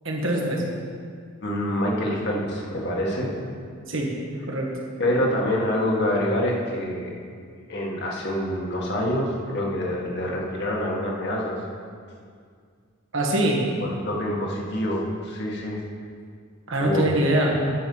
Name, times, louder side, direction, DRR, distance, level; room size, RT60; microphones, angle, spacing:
voice 1, 0.0-0.6 3.9-4.1 4.5-4.7 13.1-13.6 16.7-17.6, right 1 dB, 65° right, -1 dB, 1.6 m, -23 dB
voice 2, 1.4-3.3 5.0-7.1 7.7-11.6 13.8-15.8 16.8-17.1, left 1 dB, 55° left, -3 dB, 1.8 m, -26 dB
10.5 x 6.3 x 5.5 m, 2.1 s
head